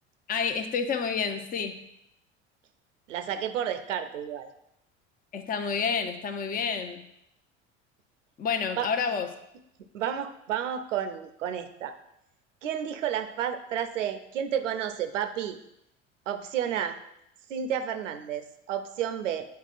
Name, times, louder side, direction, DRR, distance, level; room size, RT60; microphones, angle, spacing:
voice 1, 0.3-1.8 5.3-7.1 8.4-9.3, left 6 dB, 25° left, 6 dB, 0.6 m, -29 dB
voice 2, 3.1-4.5 8.8-8.9 9.9-11.9 12.6-15.6 16.3-17.0 17.5-19.5, right 9 dB, 80° right, 8 dB, 0.6 m, -31 dB
9.2 x 4.7 x 2.5 m, 0.81 s
figure-of-eight pair, 65°, 37 cm